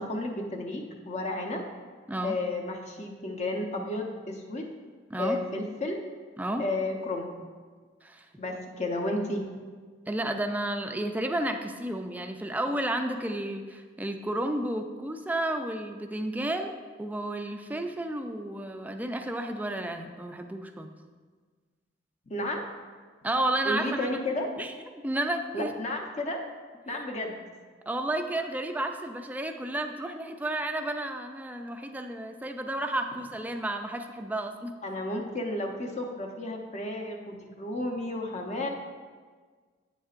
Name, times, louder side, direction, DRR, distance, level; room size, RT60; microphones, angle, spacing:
voice 1, 0.0-1.6 2.2-4.6 5.2-6.0 6.6-7.3 8.4-9.4 22.3-22.6 23.6-24.5 25.5-26.4 26.9-27.4 34.8-38.7, left 1 dB, 40° left, 2 dB, 0.7 m, -32 dB
voice 2, 10.1-20.9 23.2-24.2 24.6-25.7 27.9-34.7, right 1 dB, 10° right, 5 dB, 0.4 m, -32 dB
8.2 x 7.1 x 2.5 m, 1.5 s
head